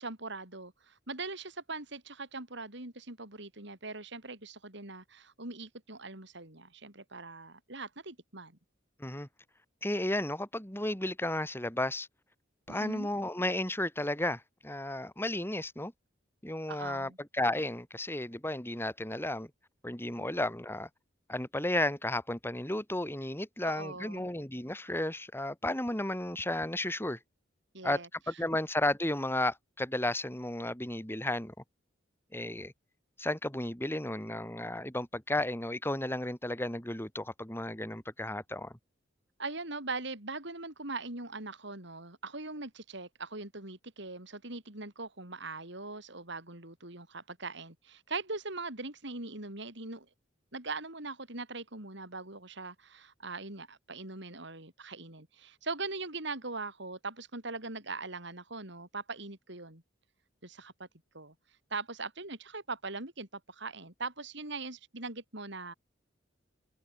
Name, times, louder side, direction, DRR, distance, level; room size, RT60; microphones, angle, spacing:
voice 1, 0.0-8.6 12.7-13.1 16.7-17.2 20.2-20.3 23.6-24.3 27.7-28.1 39.4-50.1 50.5-59.8 60.4-60.9 61.1-61.3 61.7-65.7, right 3 dB, 65° right, 5.9 m, -41 dB
voice 2, 9.8-12.1 12.7-15.9 16.4-19.5 19.8-20.9 21.3-27.2 27.8-28.0 28.3-31.5 32.3-32.7 33.2-38.7, left 1 dB, 10° left, 4.5 m, -33 dB
head